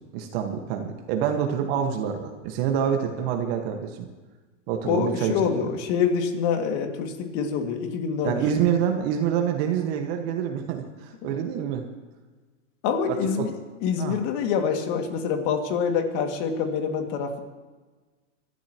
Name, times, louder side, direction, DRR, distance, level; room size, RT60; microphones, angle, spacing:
voice 1, 0.0-4.1 4.7-5.5 8.2-11.9 13.1-13.4 14.0-14.2, right 8 dB, 50° right, 4 dB, 1.7 m, -27 dB
voice 2, 4.8-8.4 11.2-11.3 12.8-13.5 13.8-17.4, left 6 dB, 45° left, 4 dB, 2.5 m, -26 dB
25.0 x 13.0 x 3.1 m, 1.3 s
hypercardioid pair, 125°, 38 cm